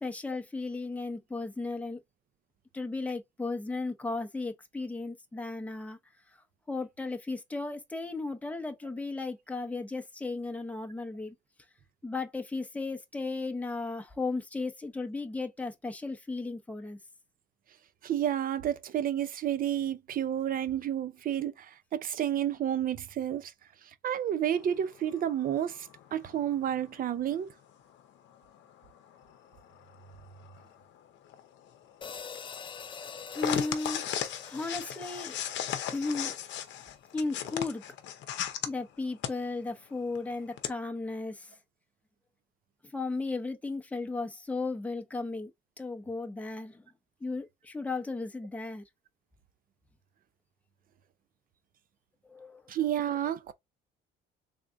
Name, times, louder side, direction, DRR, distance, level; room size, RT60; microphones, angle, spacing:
voice 1, 0.0-2.0 2.7-6.0 6.3-6.4 6.7-11.3 12.0-17.0 33.3-34.0 34.4-35.4 35.9-36.3 37.1-37.8 38.6-41.6 42.8-45.5 45.8-46.8 47.2-48.8 52.2-52.6, left 3 dB, 5° left, 0.8 m, -35 dB
voice 2, 18.0-23.5 24.0-27.5 52.7-53.5, right 10 dB, 50° right, 0.6 m, -30 dB
sound 1, 24.6-27.4 27.9-38.7 39.2-39.3 39.7-39.8 40.1-40.7, left 11 dB, 75° left, 0.7 m, -37 dB
sound 2, 32.0-36.4, left 6 dB, 25° left, 0.4 m, -45 dB
3.6 x 2.5 x 3.4 m
cardioid pair, 100°, 19 cm